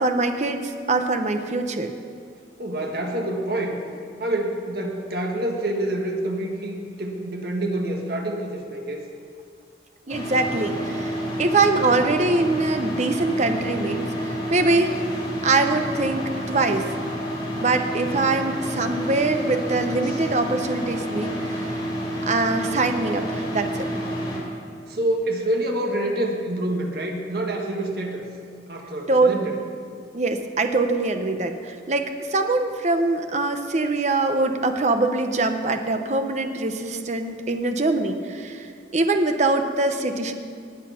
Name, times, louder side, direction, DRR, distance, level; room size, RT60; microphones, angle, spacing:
voice 1, 0.0-1.9 10.1-15.0 15.4-16.9 17.6-21.8 22.3-23.9 29.1-29.4 30.1-38.7 38.9-40.3, right 3 dB, 40° right, 6 dB, 0.8 m, -23 dB
voice 2, 2.6-3.8 4.2-9.0 24.9-28.2 28.7-29.5, right 1 dB, 60° right, 2 dB, 1.6 m, -27 dB
sound 1, 10.1-24.4, equal, 25° left, 3.3 m, -29 dB
19.0 x 8.1 x 5.8 m, 2.3 s
head